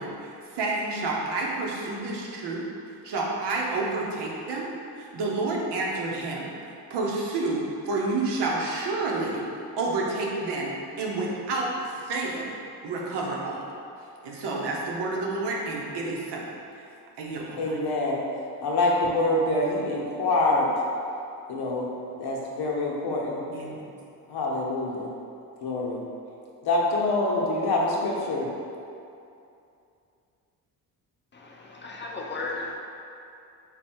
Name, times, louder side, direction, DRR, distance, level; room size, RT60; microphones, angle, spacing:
voice 1, 0.0-2.6 3.0-4.7 5.0-6.5 6.9-9.4 9.8-12.5 12.8-13.6 14.2-16.5 16.8-16.9 17.2-17.8 23.5-23.9, right 3 dB, 65° right, -3 dB, 0.8 m, -29 dB
voice 2, 17.6-18.2 18.6-20.7 21.5-23.4 24.3-25.1 25.6-26.0 26.6-28.5, left 2 dB, 60° left, -2 dB, 0.8 m, -25 dB
voice 3, 31.3-32.8, left 3 dB, 25° left, -2 dB, 0.6 m, -35 dB
3.5 x 2.3 x 4.3 m, 2.6 s
supercardioid pair, 60°, 44 cm